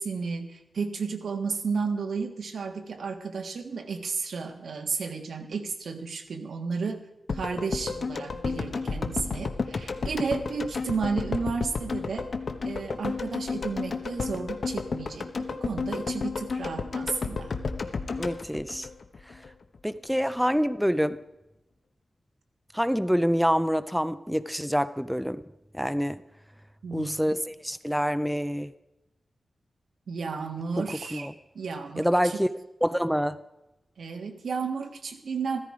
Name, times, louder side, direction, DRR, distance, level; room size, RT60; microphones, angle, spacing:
voice 1, 0.0-7.0 7.3-12.3 12.6-17.5 26.8-27.2 30.1-31.3 31.5-32.4 34.0-35.6, right 5 dB, 80° right, 1.5 m, -32 dB
sound 1, 7.3-19.5 19.8-19.9, left 4 dB, 55° left, 1.0 m, -32 dB
voice 2, 18.2-18.9 19.8-21.2 22.7-25.4 25.7-26.2 26.9-28.7 30.9-31.3 32.0-32.5 32.8-33.4, equal, ahead, 0.4 m, -26 dB
15.0 x 14.0 x 4.9 m
wide cardioid pair, 120°, 0 cm